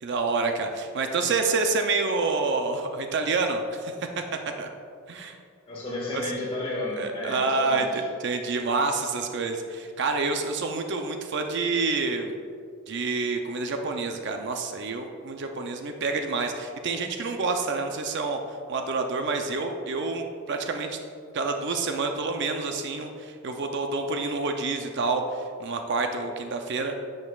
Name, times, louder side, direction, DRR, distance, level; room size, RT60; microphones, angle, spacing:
voice 1, 0.0-4.2 4.6-4.7 5.1-5.4 6.1-6.2 7.0-12.3 12.9-18.4 18.7-21.0 21.3-26.9, right 3 dB, 55° right, 5 dB, 0.5 m, -28 dB
voice 2, 5.7-8.0, left 2 dB, 25° left, -4 dB, 1.6 m, -32 dB
10.5 x 6.5 x 2.3 m, 2.4 s
head